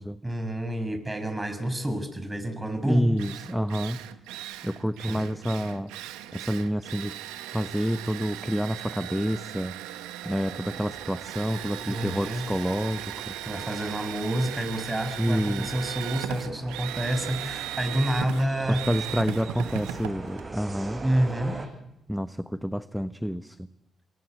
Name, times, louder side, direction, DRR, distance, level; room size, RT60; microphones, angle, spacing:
voice 1, 0.2-3.0 5.0-5.2 11.8-12.4 13.5-18.8 21.0-21.6, right 1 dB, 15° right, 8 dB, 7.1 m, -28 dB
Drill, 2.7-2.8 3.2-21.3, right 13 dB, 85° right, 1.3 m, -38 dB
voice 2, 2.8-4.1 4.6-5.9 6.3-7.2 7.5-9.7 10.2-13.3 15.2-15.7 18.7-21.0 22.1-23.7, equal, ahead, 11 dB, 1.1 m, -28 dB
sound 1, 10.2-21.7, right 3 dB, 35° right, 6.7 m, -43 dB
26.5 x 23.0 x 8.4 m, 0.91 s
hypercardioid pair, 45°, 0 cm